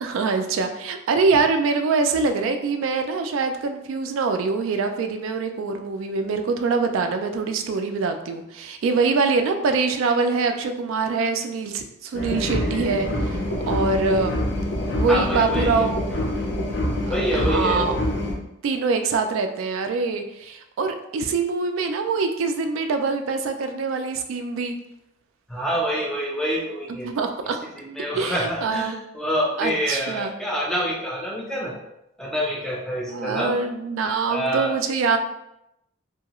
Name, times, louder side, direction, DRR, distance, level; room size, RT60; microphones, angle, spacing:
voice 1, 0.0-13.4 13.7-14.4 15.0-16.1 17.1-17.9 18.6-24.7 26.9-27.6 28.1-29.0 29.6-30.3 33.1-35.2, right 4 dB, 75° right, 6 dB, 0.3 m, -24 dB
sound 1, 12.1-18.3, left 1 dB, 55° left, 0.6 m, -26 dB
voice 2, 15.1-15.9 17.1-17.9 25.5-27.1 27.8-31.7 32.2-33.6 34.3-34.8, equal, 5° left, -2 dB, 0.5 m, -26 dB
2.7 x 2.3 x 2.9 m, 0.85 s
head